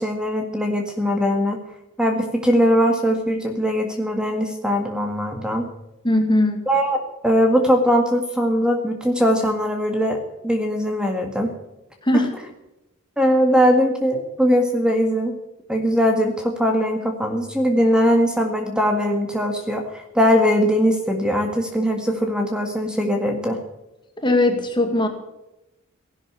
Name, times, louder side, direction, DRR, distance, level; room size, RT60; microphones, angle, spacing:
voice 1, 0.0-1.6 2.0-5.7 6.7-10.2 10.4-11.5 13.2-15.3 15.7-23.6, equal, 5° right, 3 dB, 1.9 m, -20 dB
voice 2, 6.0-6.6 12.0-12.3 24.2-25.1, left 1 dB, 20° left, 5 dB, 2.1 m, -19 dB
16.0 x 12.0 x 7.3 m, 0.92 s
head